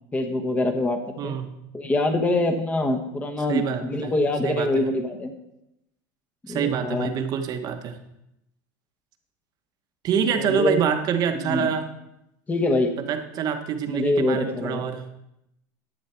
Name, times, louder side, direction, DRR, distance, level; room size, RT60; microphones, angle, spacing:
voice 1, 0.1-1.4 1.7-5.3 6.4-7.1 10.4-10.8 11.3-11.7 12.5-12.9 13.9-14.8, left 2 dB, 15° left, 5 dB, 1.0 m, -24 dB
voice 2, 3.5-4.1 4.4-4.9 6.5-8.0 10.0-11.9 13.1-15.0, right 7 dB, 40° right, 7 dB, 1.1 m, -26 dB
11.5 x 7.2 x 4.4 m, 0.86 s
supercardioid pair, 135°, 11 cm